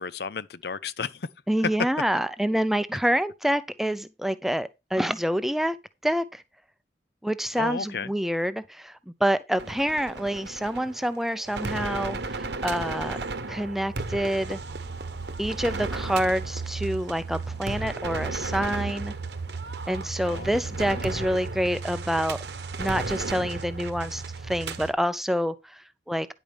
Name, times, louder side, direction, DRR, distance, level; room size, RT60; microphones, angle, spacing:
voice 1, 0.0-1.3 7.6-8.1 20.2-21.3, left 5 dB, 60° left, 0.6 m, -34 dB
voice 2, 1.5-5.8 6.0-6.4 7.2-13.2 13.5-14.6 15.4-19.1 19.9-22.4 22.8-26.3, equal, ahead, 0.5 m, -27 dB
sound 1, 9.6-24.9, right 3 dB, 70° right, 1.1 m, -34 dB
10.0 x 8.5 x 3.5 m
head